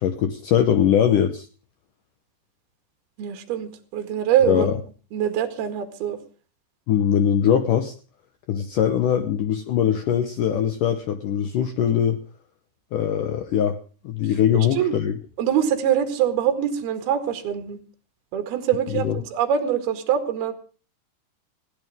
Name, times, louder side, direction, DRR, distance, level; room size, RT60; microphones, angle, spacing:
voice 1, 0.0-1.5 4.5-4.8 6.9-7.9 8.5-12.2 12.9-13.8 14.0-15.2 18.9-19.1, left 9 dB, 80° left, 9 dB, 1.9 m, -21 dB
voice 2, 3.2-4.7 5.1-6.2 14.5-14.9 15.4-17.8 18.3-20.5, right 9 dB, 60° right, 7 dB, 3.7 m, -24 dB
20.0 x 15.5 x 3.6 m, 0.38 s
omnidirectional pair, 5.3 m